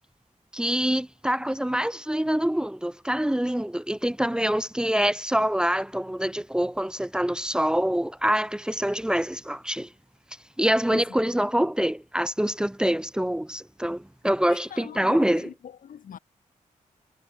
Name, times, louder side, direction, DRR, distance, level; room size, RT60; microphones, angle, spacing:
voice 1, 0.5-9.9 10.6-15.5, equal, 5° right, 1.0 m, -25 dB
voice 2, 14.5-16.2, left 8 dB, 90° left, 6.8 m, -41 dB
wide cardioid pair, 125°, 14 cm